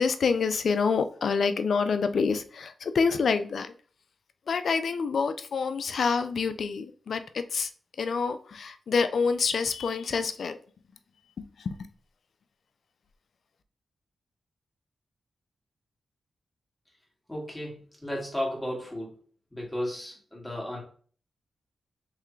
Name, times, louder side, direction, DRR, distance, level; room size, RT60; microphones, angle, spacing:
voice 1, 0.0-3.7 4.5-7.7 8.0-10.6 11.4-11.8, left 5 dB, 70° left, 0.4 m, -27 dB
voice 2, 17.3-19.1 19.5-20.8, left 1 dB, 10° left, 2.0 m, -34 dB
3.6 x 3.2 x 3.1 m
cardioid pair, 55°, 0 cm